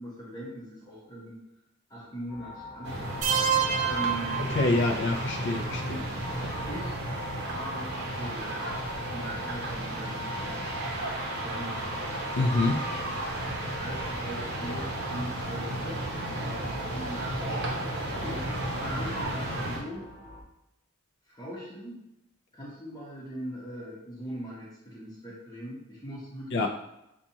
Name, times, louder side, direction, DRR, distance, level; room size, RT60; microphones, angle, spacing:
voice 1, 0.0-1.4 1.9-3.1 3.8-4.4 5.8-6.0 6.7-6.9 7.5-8.6 9.1-10.8 11.4-11.8 13.7-18.5 18.8-20.1 21.3-22.0 22.5-26.7, equal, 20° left, -7 dB, 1.0 m, -40 dB
sound 1, 2.3-20.4, left 2 dB, 15° right, 0.8 m, -45 dB
sound 2, 2.8-19.8, right 1 dB, 55° right, 1.1 m, -33 dB
sound 3, 3.2-5.2, right 8 dB, 40° right, 0.4 m, -28 dB
voice 2, 4.5-6.0 12.4-12.8 26.5-26.7, left 2 dB, 60° left, 2 dB, 0.4 m, -26 dB
7.2 x 2.4 x 2.8 m, 0.86 s
head